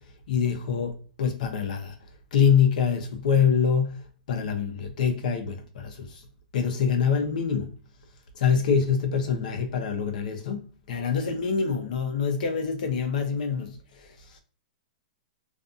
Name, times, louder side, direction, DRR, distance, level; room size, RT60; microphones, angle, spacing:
voice 1, 0.3-2.0 2.3-6.2 6.5-7.7 8.3-14.4, left 6 dB, 70° left, 0.7 m, -25 dB
2.5 x 2.4 x 2.5 m
hypercardioid pair, 140°, 5 cm